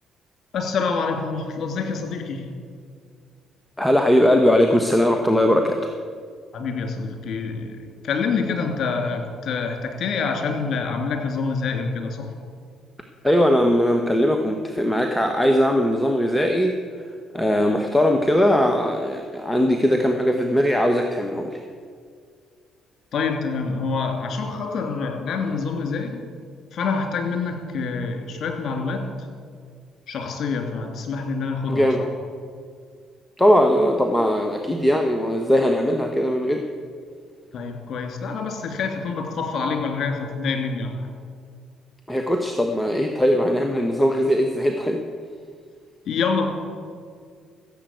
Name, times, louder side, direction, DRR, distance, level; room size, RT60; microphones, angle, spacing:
voice 1, 0.5-2.5 6.5-12.3 23.1-26.2 26.7-29.0 30.1-31.9 37.5-41.1 46.1-46.5, left 4 dB, 55° left, 4 dB, 2.8 m, -26 dB
voice 2, 3.8-5.9 13.2-16.8 17.3-21.6 31.7-32.0 33.4-36.7 42.1-45.0, equal, 10° left, 4 dB, 1.3 m, -20 dB
15.0 x 7.6 x 8.5 m, 2.1 s
hypercardioid pair, 50°, 0 cm